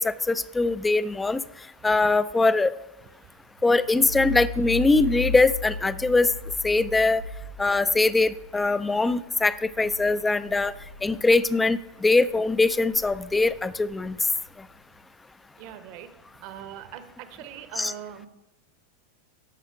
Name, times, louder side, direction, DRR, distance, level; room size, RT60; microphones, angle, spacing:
voice 1, 0.0-1.4 1.8-2.7 3.6-6.3 6.6-7.2 7.6-10.7 11.0-14.2 17.8-17.9, left 3 dB, 10° left, 16 dB, 0.4 m, -22 dB
sound 1, 3.6-11.8 12.2-14.8, left 2 dB, 75° left, 4.3 m, -37 dB
voice 2, 15.6-16.1 16.4-18.3, right 10 dB, 45° right, 11 dB, 0.9 m, -41 dB
14.5 x 5.7 x 4.7 m, 0.99 s
figure-of-eight pair, 90°, 0 cm